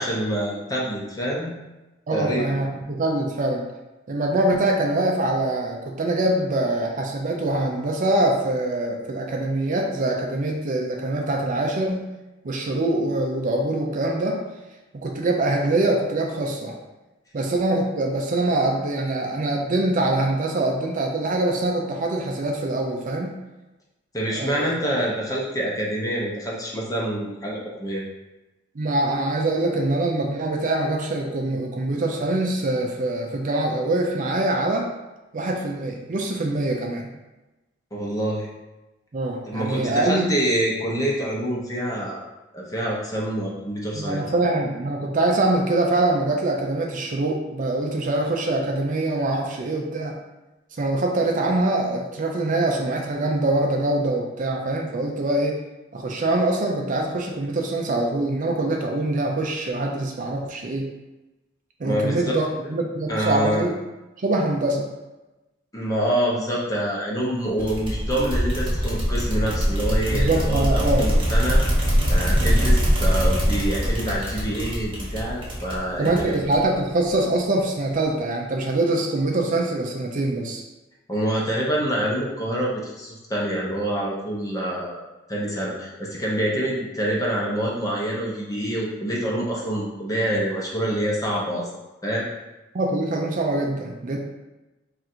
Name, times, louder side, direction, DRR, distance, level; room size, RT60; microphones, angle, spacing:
voice 1, 0.0-1.5 2.1-2.7 24.1-28.0 37.9-38.5 39.5-42.2 42.5-44.2 61.8-62.2 63.1-63.6 65.7-71.6 72.1-76.3 81.1-85.0 85.3-91.7 92.0-92.3, right 1 dB, 20° left, -4 dB, 0.9 m, -26 dB
voice 2, 2.1-3.7 4.1-12.1 12.4-14.4 14.9-16.7 17.3-23.4 24.3-24.7 28.8-34.9 35.3-37.1 39.1-40.4 43.9-50.2 50.8-55.6 55.9-60.8 61.8-63.7 64.2-64.9 70.1-71.1 72.4-72.7 76.0-80.6 92.7-94.2, right 2 dB, 45° right, 1 dB, 0.5 m, -24 dB
sound 1, 67.6-76.8, equal, 25° right, 1.1 m, -22 dB
3.8 x 2.5 x 4.3 m, 1.1 s
head